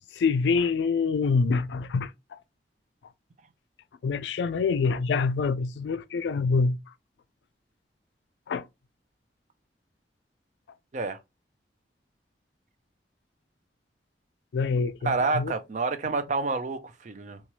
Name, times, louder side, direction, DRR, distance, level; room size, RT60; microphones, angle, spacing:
voice 1, 0.2-2.4 4.0-6.8 8.5-8.6 14.5-15.5, left 4 dB, 80° left, 0.3 m, -26 dB
voice 2, 15.0-17.4, right 3 dB, 45° right, 0.4 m, -28 dB
3.0 x 2.3 x 2.7 m
head